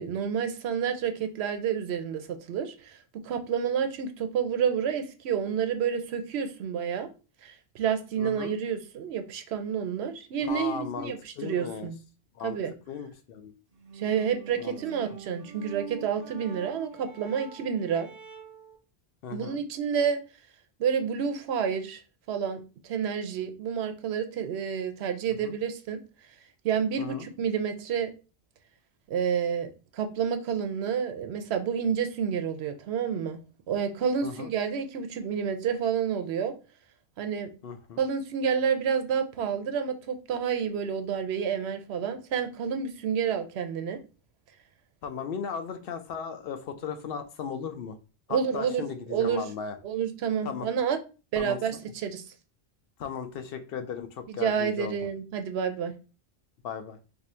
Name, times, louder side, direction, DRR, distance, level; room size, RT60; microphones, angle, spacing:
voice 1, 0.0-7.1 7.4-12.0 12.4-12.7 14.0-18.1 19.3-20.2 20.8-22.0 22.3-26.0 26.6-28.1 29.1-29.7 29.9-33.4 33.7-36.5 37.2-37.5 38.0-44.0 48.3-48.8 49.1-49.4 49.8-51.0 51.3-52.2 54.3-55.9, right 7 dB, 85° right, 7 dB, 0.9 m, -29 dB
voice 2, 8.2-8.6 10.4-11.9 12.3-12.6 12.9-13.6 14.6-14.8 19.2-19.6 25.4-25.5 27.0-27.3 34.2-34.5 37.6-38.0 45.0-48.0 48.3-49.8 50.4-50.7 51.3-51.8 53.0-55.0 56.6-57.0, left 7 dB, 65° left, 8 dB, 0.7 m, -36 dB
sound 1, 13.7-18.8, right 7 dB, 45° right, 0.6 m, -45 dB
2.7 x 2.5 x 4.2 m, 0.33 s
omnidirectional pair, 1.1 m